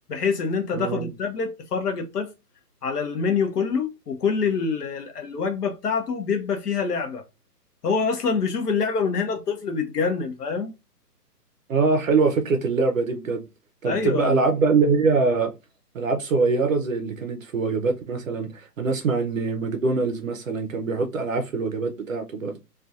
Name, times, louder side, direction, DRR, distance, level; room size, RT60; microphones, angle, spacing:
voice 1, 0.1-2.3 2.8-7.2 7.8-10.7 13.8-14.4, left 5 dB, 70° left, 0.7 m, -25 dB
voice 2, 0.7-1.1 11.7-13.4 13.8-15.5 15.9-22.6, right 4 dB, 55° right, 0.5 m, -23 dB
2.6 x 2.3 x 2.3 m
hypercardioid pair, 150°, 48 cm